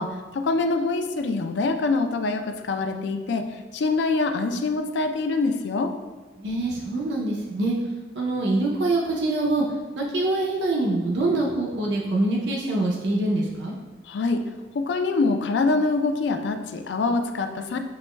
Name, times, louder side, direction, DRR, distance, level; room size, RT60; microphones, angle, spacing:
voice 1, 0.0-5.9 14.1-14.5 14.7-17.8, left 3 dB, 75° left, 7 dB, 0.4 m, -25 dB
voice 2, 6.4-7.8 8.2-9.6 10.0-13.7, right 2 dB, 75° right, -2 dB, 0.6 m, -24 dB
7.5 x 3.0 x 2.2 m, 1.3 s
head